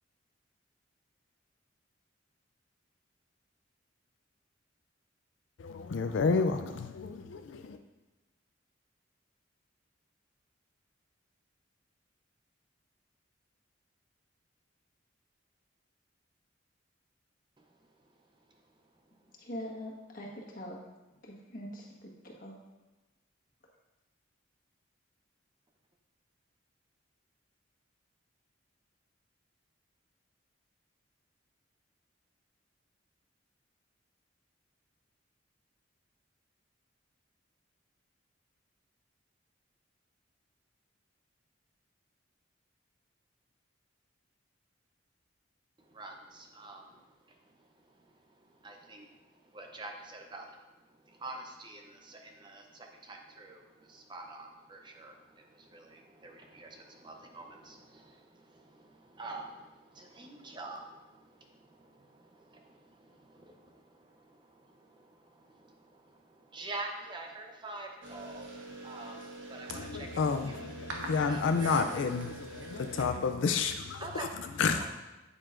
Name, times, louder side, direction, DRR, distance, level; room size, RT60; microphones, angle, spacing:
voice 1, 5.6-7.8 69.7-74.9, left 5 dB, 70° left, 7 dB, 0.4 m, -31 dB
voice 2, 19.4-20.8 21.2-22.5, equal, 45° left, -2 dB, 1.4 m, -43 dB
voice 3, 45.9-50.6 51.0-70.2 70.5-70.6 71.3-71.8 74.0-74.3 74.8-74.9, right 2 dB, 25° right, 2 dB, 0.7 m, -47 dB
sound 1, 68.0-73.0, right 2 dB, 75° right, 1.2 m, -44 dB
8.7 x 8.6 x 2.5 m, 1.1 s
head